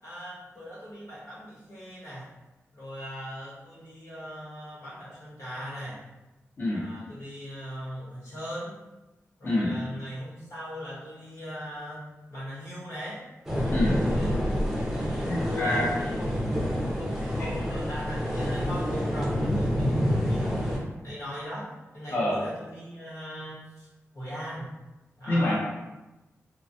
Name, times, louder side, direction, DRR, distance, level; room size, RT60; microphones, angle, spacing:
voice 1, 0.0-2.3 2.7-6.0 6.7-8.8 9.4-12.0 12.3-13.2 14.0-14.4 15.0-23.9 24.1-24.7 25.2-25.6, equal, 85° left, -8 dB, 1.4 m, -39 dB
sound 1, 13.4-20.8, equal, 5° right, 0.6 m, -28 dB
voice 2, 13.7-14.0 15.3-16.0 17.4-17.5 22.1-22.3 25.3-25.6, left 1 dB, 40° left, -8 dB, 0.7 m, -26 dB
3.1 x 2.3 x 2.7 m, 1.1 s
wide cardioid pair, 175°, 5 cm